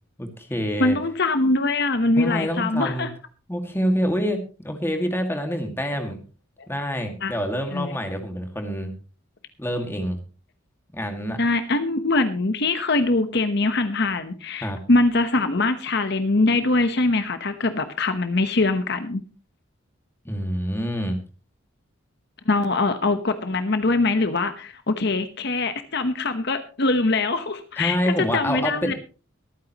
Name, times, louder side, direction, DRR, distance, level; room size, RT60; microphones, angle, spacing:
voice 1, 0.2-1.0 2.2-3.1 3.5-6.2 6.7-8.9 9.6-10.2 10.9-11.4 14.6-14.8 20.3-21.2 27.8-28.9, equal, 10° left, 5 dB, 2.0 m, -26 dB
voice 2, 0.8-3.1 6.6-6.7 7.2-7.3 7.7-8.0 11.4-19.2 22.5-28.9, left 2 dB, 55° left, 10 dB, 1.0 m, -23 dB
23.5 x 9.3 x 3.0 m, 0.34 s
head